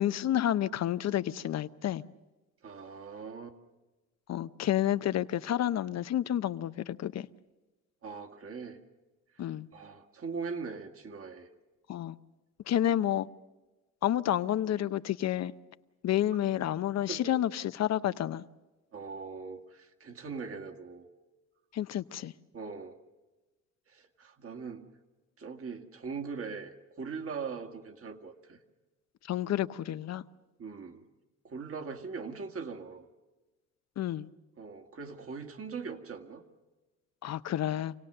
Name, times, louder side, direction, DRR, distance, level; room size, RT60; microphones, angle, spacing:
voice 1, 0.0-2.0 4.3-7.3 9.4-9.7 11.9-12.2 12.7-13.3 14.0-15.5 16.0-18.4 21.7-22.3 29.3-30.2 34.0-34.3 37.2-37.9, left 11 dB, 60° left, 0.7 m, -30 dB
voice 2, 2.6-3.6 8.0-8.8 9.3-11.5 12.9-13.0 17.1-17.3 18.9-21.1 22.5-23.0 23.9-24.9 25.4-28.6 30.6-31.0 31.4-33.1 34.6-36.4, right 5 dB, 50° right, 1.9 m, -41 dB
26.5 x 17.5 x 6.6 m
cardioid pair, 90°, 30 cm